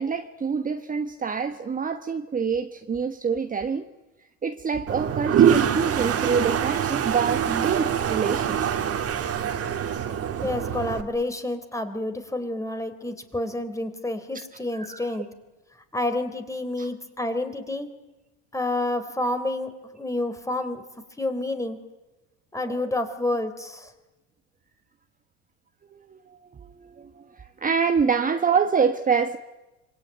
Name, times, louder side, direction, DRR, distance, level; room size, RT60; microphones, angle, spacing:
voice 1, 0.0-3.8 4.4-8.7 9.4-10.0 14.7-15.2 16.8-16.9 22.6-22.9 25.9-26.2 26.5-29.4, right 6 dB, 25° right, 1.3 m, -26 dB
Toilet flush, 4.9-11.0, right 9 dB, 40° right, 3.0 m, -24 dB
voice 2, 10.4-15.3 15.9-17.9 18.5-20.8 21.2-21.8 22.5-23.9, left 2 dB, 10° left, 3.8 m, -29 dB
26.5 x 23.5 x 9.5 m
supercardioid pair, 95°, 35 cm